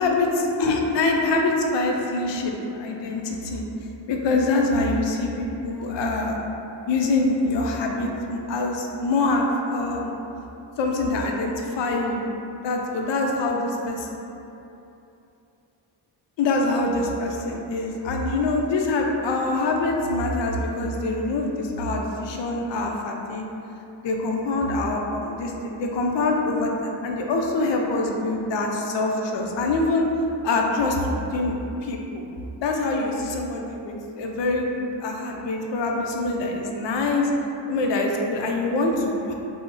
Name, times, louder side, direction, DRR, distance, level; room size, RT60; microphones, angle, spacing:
voice 1, 0.0-3.7 4.1-6.4 6.9-10.1 10.8-12.3 12.6-14.2 16.4-23.5 24.0-30.1 30.4-32.2 32.6-37.3 37.7-39.3, left 2 dB, 60° left, 1 dB, 0.5 m, -25 dB
2.3 x 2.1 x 3.7 m, 2.9 s
supercardioid pair, 40°, 49 cm